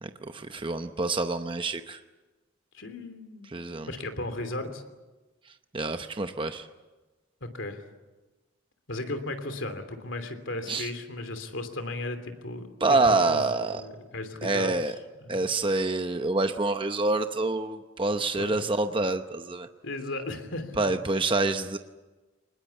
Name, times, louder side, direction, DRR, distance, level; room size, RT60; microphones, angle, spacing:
voice 1, 0.0-2.0 3.5-3.9 5.7-6.7 10.7-10.9 12.8-13.8 14.4-14.9 15.3-19.7 20.8-21.8, right 3 dB, 25° right, 8 dB, 0.8 m, -27 dB
voice 2, 2.7-3.5 3.9-4.8 7.4-7.8 8.9-13.4 13.7-14.7 15.2-15.5 18.3-18.5 19.8-20.9, left 2 dB, 70° left, 8 dB, 3.1 m, -35 dB
25.0 x 20.5 x 8.3 m, 1.2 s
head